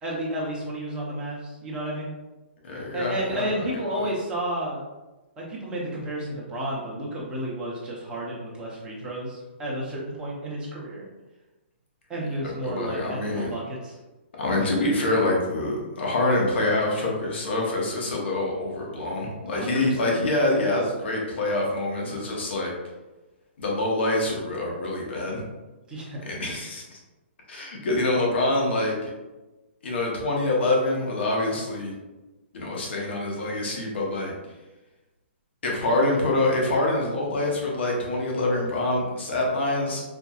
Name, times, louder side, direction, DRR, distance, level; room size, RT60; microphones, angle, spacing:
voice 1, 0.0-2.1 2.9-4.8 5.4-11.0 12.1-14.0 19.5-20.1 25.9-26.2, right 1 dB, 15° right, -5 dB, 0.8 m, -32 dB
voice 2, 2.6-3.7 3.9-4.1 12.4-13.5 14.4-22.7 23.6-25.4 26.2-27.0 27.5-29.1 29.8-31.9 32.5-34.3 35.6-40.0, left 2 dB, 65° left, -2 dB, 1.1 m, -26 dB
4.5 x 2.6 x 2.4 m, 1.1 s
hypercardioid pair, 150°, 7 cm